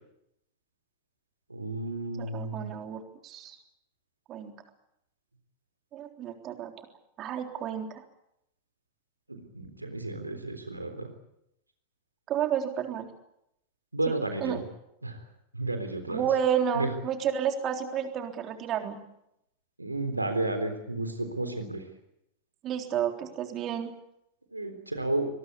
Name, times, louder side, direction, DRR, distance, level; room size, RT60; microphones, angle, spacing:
voice 1, 1.5-2.8 9.3-11.1 13.9-14.6 15.0-15.1 15.6-16.2 16.8-16.9 19.8-21.8 24.5-25.3, right 2 dB, 85° right, 7 dB, 3.6 m, -32 dB
voice 2, 2.2-3.6 4.3-4.5 5.9-6.9 7.2-8.0 12.3-13.1 14.1-14.6 16.1-19.0 22.6-23.9, right 9 dB, 35° right, 5 dB, 3.6 m, -31 dB
24.5 x 21.5 x 8.5 m, 0.81 s
figure-of-eight pair, 90°, 0 cm